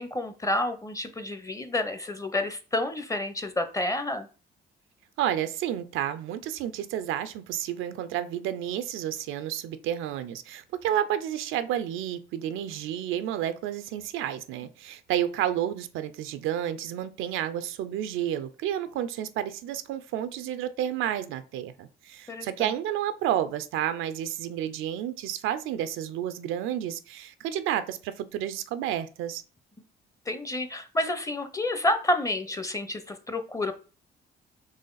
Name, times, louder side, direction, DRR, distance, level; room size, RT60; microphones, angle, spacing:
voice 1, 0.0-4.3 22.3-22.7 30.3-33.7, left 1 dB, 15° left, 0.6 m, -29 dB
voice 2, 5.2-29.4, right 11 dB, 90° right, 0.4 m, -31 dB
4.1 x 3.0 x 3.9 m
cardioid pair, 90°, 20 cm